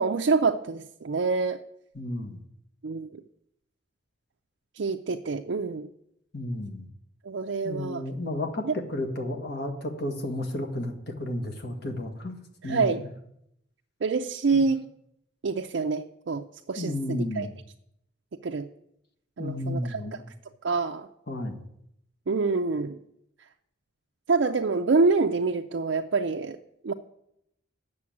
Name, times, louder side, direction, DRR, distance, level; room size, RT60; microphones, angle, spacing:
voice 1, 0.0-1.6 2.8-3.1 4.8-5.9 7.2-8.0 8.6-8.7 12.6-13.0 14.0-14.8 15.4-17.5 18.4-18.7 19.4-20.2 20.6-21.1 22.3-23.0 24.3-26.6 26.8-26.9, right 4 dB, 60° right, 3 dB, 0.5 m, -26 dB
voice 2, 1.9-2.4 6.3-6.9 7.6-12.4 12.6-13.1 14.5-14.6 16.8-17.5 19.4-20.2 21.3-21.6, left 1 dB, 55° left, 3 dB, 1.6 m, -32 dB
8.5 x 6.8 x 8.6 m, 0.77 s
head